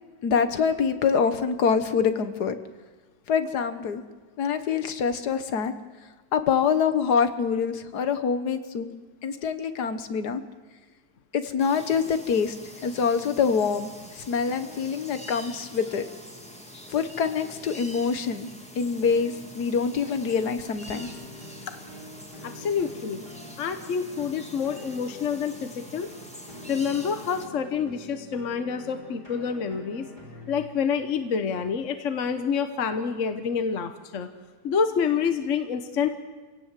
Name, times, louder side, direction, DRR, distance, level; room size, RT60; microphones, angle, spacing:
voice 1, 0.2-2.6 3.3-4.0 4.4-5.7 6.3-8.9 9.2-10.4 11.3-12.5 12.8-13.9 14.3-16.0 16.9-18.5 18.8-21.1, left 6 dB, 80° left, 10 dB, 1.8 m, -25 dB
sound 1, 11.6-27.5, equal, 5° left, 2.1 m, -45 dB
sound 2, 14.5-16.9 17.2-18.3 19.1-30.6, left 2 dB, 30° left, 3.3 m, -47 dB
voice 2, 22.4-23.2 23.6-26.1 26.7-30.1 30.5-34.3 34.6-36.1, left 6 dB, 55° left, 8 dB, 1.3 m, -27 dB
26.5 x 17.0 x 7.5 m, 1.3 s
omnidirectional pair, 1.7 m